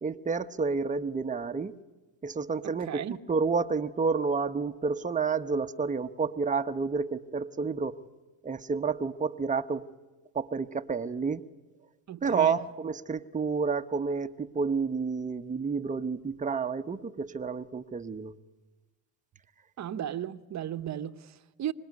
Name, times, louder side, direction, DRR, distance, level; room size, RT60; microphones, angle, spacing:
voice 1, 0.0-1.7 2.2-3.0 3.3-8.0 8.4-9.8 10.3-11.4 12.2-18.4, right 5 dB, 20° right, 1.0 m, -30 dB
voice 2, 2.6-3.2 12.1-12.6 19.8-21.7, right 10 dB, 40° right, 1.1 m, -35 dB
25.5 x 20.0 x 9.6 m
supercardioid pair, 75°, 41 cm